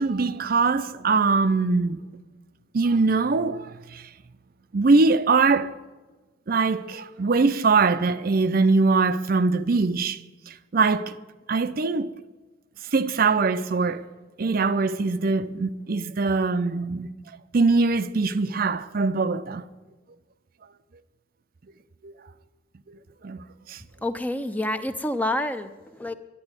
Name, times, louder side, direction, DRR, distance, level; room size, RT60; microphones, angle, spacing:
voice 1, 0.0-2.1 2.7-4.1 4.7-5.7 6.5-11.1 11.5-12.1 12.9-14.1 14.4-17.1 17.5-19.6 22.0-22.1 22.9-23.8, right 4 dB, 50° right, 0.5 m, -22 dB
voice 2, 24.0-26.1, left 1 dB, 10° left, 0.6 m, -28 dB
11.0 x 10.5 x 9.6 m
head